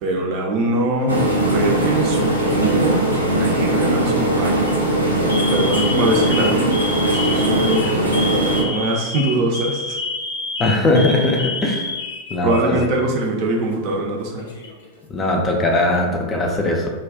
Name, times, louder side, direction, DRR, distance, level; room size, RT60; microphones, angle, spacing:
voice 1, 0.0-4.6 5.5-6.8 7.1-10.0 12.4-14.5, right 2 dB, 40° right, 0 dB, 0.5 m, -23 dB
sound 1, 1.1-8.6, right 1 dB, 85° right, 0.6 m, -19 dB
Alarm, 2.4-2.9 3.8-4.1 4.5-4.7 5.3-12.8 13.1-13.3 14.2-14.9, left 2 dB, 65° left, 0.6 m, -29 dB
voice 2, 10.6-11.9 12.3-12.8 15.1-16.9, left 2 dB, 20° left, 1 dB, 0.4 m, -19 dB
2.4 x 2.2 x 3.4 m, 1.3 s
figure-of-eight pair, 90°, 0 cm